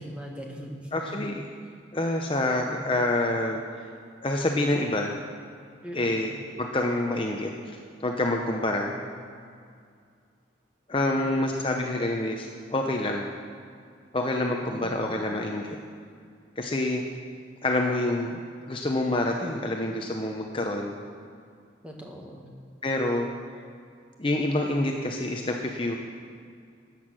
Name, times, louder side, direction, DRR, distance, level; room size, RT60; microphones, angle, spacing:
voice 1, 0.0-1.4 2.5-3.0 5.8-6.4 8.7-9.3 11.1-11.6 14.6-15.3 21.8-22.5, equal, 5° right, -1 dB, 1.5 m, -41 dB
voice 2, 0.9-1.4 1.9-3.6 4.2-5.2 5.9-6.3 6.6-8.9 10.9-13.3 14.1-15.8 16.6-17.0 17.6-18.4 18.7-20.9 22.8-23.3 24.2-26.0, left 2 dB, 25° left, 2 dB, 0.7 m, -27 dB
13.5 x 8.4 x 6.1 m, 2.2 s
head